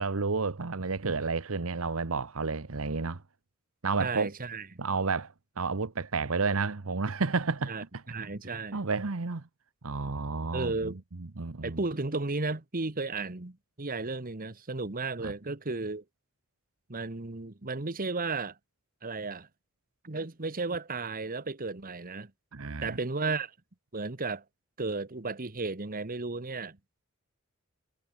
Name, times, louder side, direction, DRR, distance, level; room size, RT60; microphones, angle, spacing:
voice 1, 0.0-3.2 3.8-4.3 4.8-7.7 8.7-9.5 9.8-10.9 11.2-11.8 15.2-15.3 22.5-23.0, right 4 dB, 70° right, 1.0 m, -31 dB
voice 2, 4.0-4.7 7.7-8.8 10.5-11.0 11.6-16.0 16.9-18.6 19.0-19.5 20.0-22.3 22.8-23.5 23.9-24.4 24.8-26.8, right 3 dB, 40° right, 1.5 m, -34 dB
head